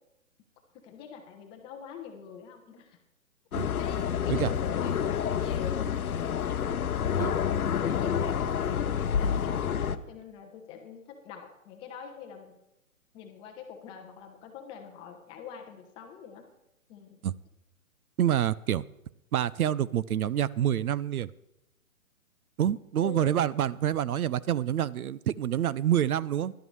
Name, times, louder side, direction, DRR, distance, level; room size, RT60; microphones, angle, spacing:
voice 1, 0.7-3.0 3.6-6.0 7.4-12.6 13.1-16.5 16.9-17.2 23.0-23.4, left 7 dB, 10° left, 4 dB, 0.6 m, -44 dB
sound 1, 3.5-10.0, left 8 dB, 80° left, 0.8 m, -28 dB
voice 2, 18.2-18.8 19.3-21.3 22.6-26.5, right 10 dB, 80° right, 20 dB, 0.6 m, -27 dB
15.0 x 11.5 x 3.2 m, 0.87 s
hypercardioid pair, 140°, 43 cm